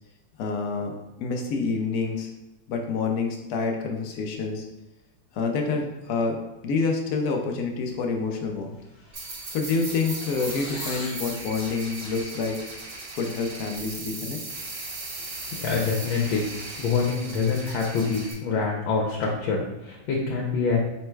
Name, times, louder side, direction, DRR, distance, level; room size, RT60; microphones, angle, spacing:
voice 1, 0.4-0.9 1.2-2.3 2.7-4.7 5.3-8.7 9.5-12.6 13.1-14.4, left 4 dB, 70° left, 2 dB, 0.9 m, -27 dB
sound 1, 8.1-8.3 8.6-11.3, left 1 dB, 40° left, 1.0 m, -43 dB
sound 2, 9.1-18.3, right 2 dB, 45° right, 1.2 m, -37 dB
voice 2, 15.6-16.4 16.8-20.8, left 5 dB, 85° left, -2 dB, 1.5 m, -25 dB
4.1 x 2.1 x 4.5 m, 1.0 s
omnidirectional pair, 2.1 m